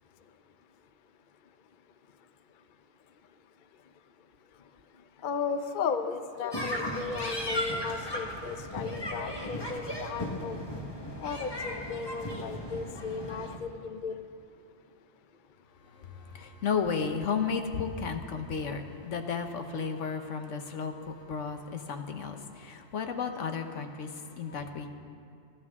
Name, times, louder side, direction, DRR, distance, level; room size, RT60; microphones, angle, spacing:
voice 1, 5.2-10.6 11.2-14.3, left 5 dB, 50° left, 9 dB, 0.7 m, -35 dB
sound 1, 6.5-13.6, left 1 dB, 20° left, 1.4 m, -36 dB
voice 2, 15.9-24.9, left 5 dB, 80° left, 6 dB, 1.3 m, -33 dB
28.0 x 11.5 x 3.6 m, 2.4 s
omnidirectional pair, 1.3 m